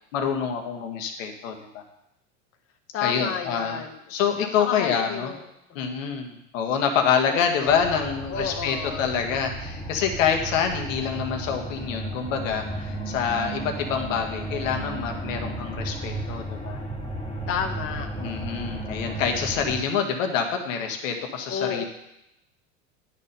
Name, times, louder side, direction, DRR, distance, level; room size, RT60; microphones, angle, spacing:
voice 1, 0.1-1.8 3.0-3.8 4.1-5.3 5.7-16.8 18.2-21.8, left 7 dB, 75° left, 4 dB, 1.3 m, -26 dB
voice 2, 2.9-4.0 4.6-5.4 5.7-6.0 7.3-7.4 7.6-9.1 17.5-18.6 21.5-21.8, left 7 dB, 35° left, 4 dB, 1.0 m, -32 dB
sound 1, 7.7-19.8, right 1 dB, 10° left, 2.3 m, -34 dB
9.8 x 4.4 x 5.3 m, 0.85 s
hypercardioid pair, 100°, 40 cm